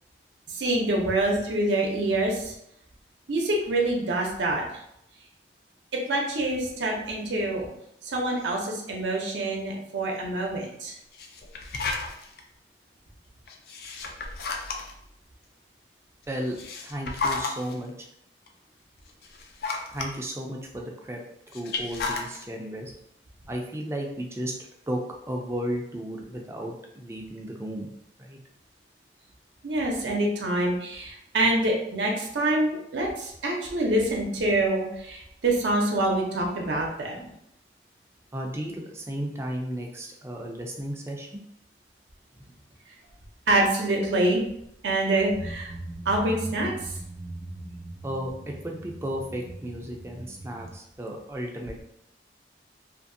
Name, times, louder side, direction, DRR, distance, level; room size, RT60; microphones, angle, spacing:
voice 1, 0.5-2.5 3.3-4.6 6.1-7.7 8.1-10.9 29.6-37.2 43.5-44.4 44.8-45.7 46.1-46.7, right 1 dB, 85° right, 0 dB, 0.6 m, -26 dB
sound 1, 11.1-12.4 13.5-15.1 16.3-17.7 18.5-18.6 19.1-20.1 21.5-22.4, left 3 dB, 60° left, 0.4 m, -32 dB
voice 2, 16.8-18.1 19.9-21.2 21.5-22.9 23.5-24.5 24.9-25.0 25.3-27.9 28.2-28.4 38.3-41.3 42.4-42.5 48.0-51.8, equal, 15° right, 0 dB, 0.4 m, -34 dB
sound 2, 45.3-50.8, right 2 dB, 55° right, 0.8 m, -40 dB
2.7 x 2.5 x 2.6 m, 0.77 s
head